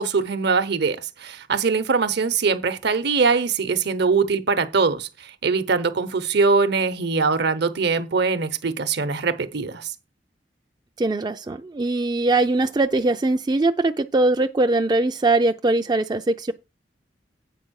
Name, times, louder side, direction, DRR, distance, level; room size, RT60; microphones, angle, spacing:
voice 1, 0.0-9.9, right 4 dB, 65° right, 0.9 m, -22 dB
voice 2, 11.0-16.5, right 2 dB, 25° right, 0.4 m, -21 dB
8.6 x 4.4 x 6.3 m
head